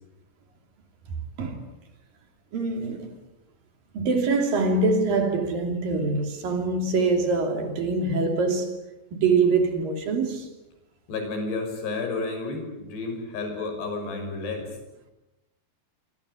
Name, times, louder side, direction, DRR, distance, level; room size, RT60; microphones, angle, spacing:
voice 1, 2.5-3.1 3.9-8.8 9.1-10.5, right 3 dB, 55° right, 4.5 m, -24 dB
voice 2, 11.1-14.7, left 3 dB, 80° left, 8.3 m, -31 dB
26.0 x 25.5 x 8.4 m
omnidirectional pair, 4.8 m